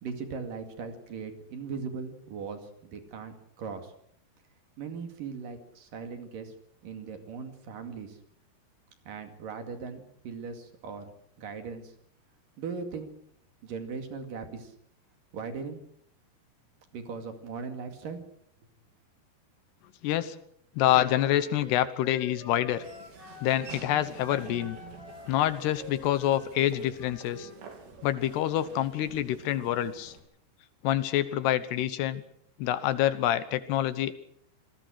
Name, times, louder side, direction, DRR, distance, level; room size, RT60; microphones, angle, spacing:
voice 1, 0.0-3.9 4.8-6.5 6.8-8.2 9.1-11.1 11.4-11.9 12.6-13.1 13.6-14.7 15.3-15.8 16.9-18.2, right 5 dB, 55° right, 6 dB, 3.7 m, -39 dB
voice 2, 20.0-20.4 20.8-22.8 23.4-24.8 25.3-27.5 28.0-30.1 30.8-32.2 32.6-34.1, left 12 dB, 75° left, 14 dB, 3.1 m, -27 dB
Wind instrument woodwind instrument, 20.8-23.8 24.2-27.6, left 3 dB, 15° left, 2.4 m, -49 dB
Laughter / Walk footsteps, 22.7-30.2, right 5 dB, 90° right, 5.7 m, -48 dB
26.5 x 20.0 x 6.5 m, 0.67 s
omnidirectional pair, 4.9 m